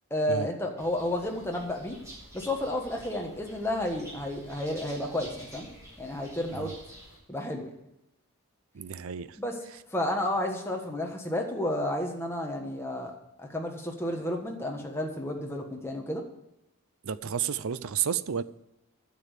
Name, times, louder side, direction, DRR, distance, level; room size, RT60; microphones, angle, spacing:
voice 1, 0.1-2.0 2.3-5.7 6.0-6.7 7.3-7.7 9.4-9.6 9.9-13.1 13.4-16.2, left 1 dB, 10° left, 1.4 m, -31 dB
sound 1, 0.8-7.2, right 1 dB, 15° right, 4.4 m, -49 dB
voice 2, 8.7-9.4 17.0-18.4, right 8 dB, 70° right, 0.5 m, -31 dB
9.9 x 7.0 x 8.2 m
head